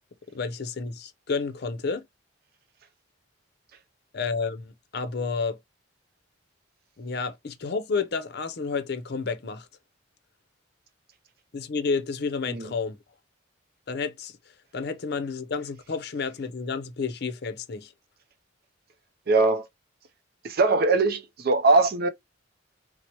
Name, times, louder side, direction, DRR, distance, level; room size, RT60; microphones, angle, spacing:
voice 1, 0.3-2.1 4.1-5.6 7.0-9.7 11.5-13.0 13.9-14.4 14.7-17.9, left 4 dB, 55° left, 0.5 m, -30 dB
voice 2, 19.3-19.7 20.4-22.1, right 3 dB, 50° right, 0.4 m, -21 dB
4.4 x 2.0 x 2.8 m
head